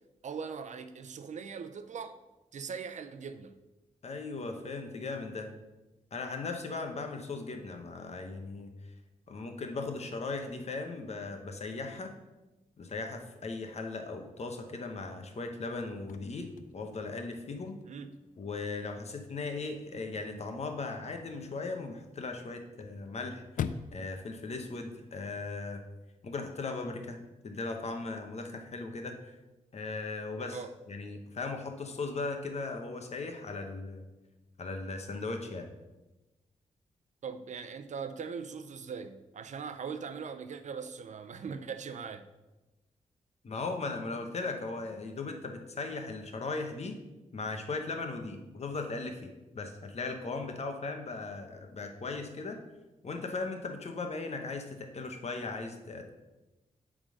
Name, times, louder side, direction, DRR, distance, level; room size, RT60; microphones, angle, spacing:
voice 1, 0.2-2.2 2.5-3.6 17.9-18.2 30.5-30.7 37.2-42.3, right 6 dB, 65° right, 10 dB, 0.6 m, -40 dB
voice 2, 4.0-5.5 6.1-8.7 9.3-12.1 12.8-17.8 18.4-23.4 23.9-25.8 26.2-27.2 27.4-29.2 29.7-30.6 30.9-34.0 34.6-35.6 43.4-46.9 47.3-49.3 49.5-52.6 53.0-56.1, left 3 dB, 55° left, 4 dB, 1.2 m, -38 dB
Chirp tweet / Car / Slam, 15.7-25.7, left 7 dB, 85° left, 0.4 m, -46 dB
8.8 x 3.8 x 6.4 m, 1.1 s
cardioid pair, 85°, 13 cm